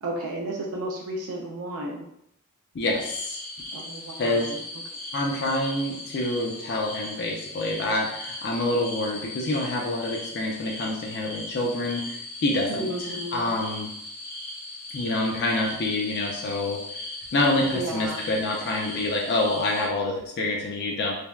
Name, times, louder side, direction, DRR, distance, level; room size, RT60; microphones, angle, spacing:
voice 1, 0.0-2.1 3.7-4.5 12.7-13.5 17.6-18.3, right 1 dB, 70° right, 0 dB, 0.4 m, -33 dB
voice 2, 2.7-3.4 4.2-4.5 5.1-13.9 14.9-16.8 17.3-21.1, left 2 dB, 50° left, -1 dB, 0.4 m, -27 dB
sound 1, 2.9-19.9, left 2 dB, 65° left, 0.8 m, -38 dB
3.3 x 2.1 x 2.3 m, 0.76 s
head